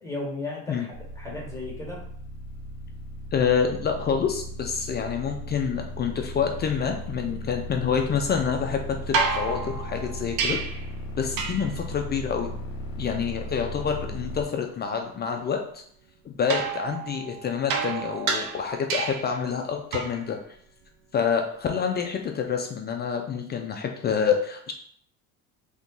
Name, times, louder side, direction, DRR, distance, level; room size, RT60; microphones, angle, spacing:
voice 1, 0.0-2.0, left 2 dB, 10° left, -2 dB, 1.3 m, -35 dB
sound 1, 0.9-14.4, equal, 50° left, 0.8 m, -36 dB
voice 2, 3.3-10.6 11.2-12.5 13.0-15.8 16.2-20.4 21.1-24.7, left 6 dB, 30° left, 4 dB, 0.3 m, -27 dB
sound 2, 9.1-10.9 11.4-11.8 16.5-19.4 19.9-20.3 22.3-22.4, right 5 dB, 75° right, 0.7 m, -29 dB
2.9 x 2.6 x 3.6 m, 0.63 s
supercardioid pair, 105°, 36 cm